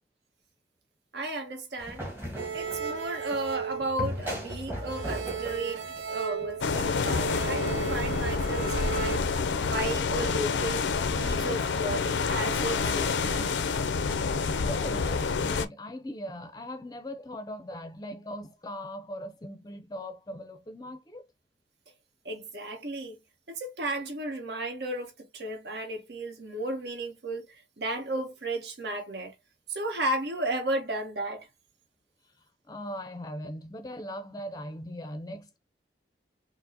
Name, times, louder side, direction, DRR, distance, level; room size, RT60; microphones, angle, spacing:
voice 1, 1.1-2.0 2.5-9.2 9.6-10.8 11.2-13.5 22.2-23.2 23.5-29.3 29.7-31.5, right 1 dB, 65° right, 1.0 m, -34 dB
sound 1, 1.8-6.6, equal, 10° right, 1.0 m, -38 dB
sound 2, 2.4-4.5 4.8-9.2, right 7 dB, 90° right, 0.4 m, -35 dB
sound 3, 6.6-15.7, left 5 dB, 85° left, 0.4 m, -28 dB
voice 2, 14.7-21.3 32.7-35.6, equal, 20° left, 0.4 m, -39 dB
4.5 x 2.0 x 2.6 m
head